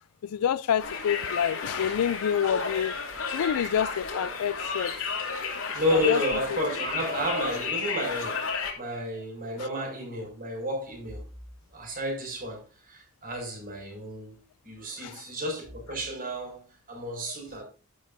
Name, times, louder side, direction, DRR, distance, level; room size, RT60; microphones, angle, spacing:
voice 1, 0.2-3.0 3.3-4.9 5.9-6.2 6.5-6.6 9.6-9.7 15.0-15.2, left 8 dB, 90° left, 0.4 m, -28 dB
Conversation, 0.8-8.7, left 5 dB, 65° left, 2.7 m, -32 dB
voice 2, 5.7-11.2 11.7-14.4 14.6-17.6, equal, 40° right, 5.4 m, -31 dB
11.0 x 11.0 x 2.7 m
head